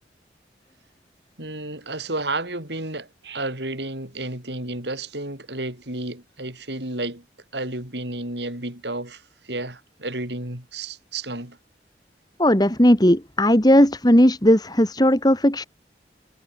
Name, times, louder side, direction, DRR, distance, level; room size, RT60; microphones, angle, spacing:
voice 1, 1.4-7.2 7.5-11.6, right 2 dB, 70° right, 7.2 m, -31 dB
voice 2, 12.4-15.7, equal, 20° left, 2.7 m, -17 dB
head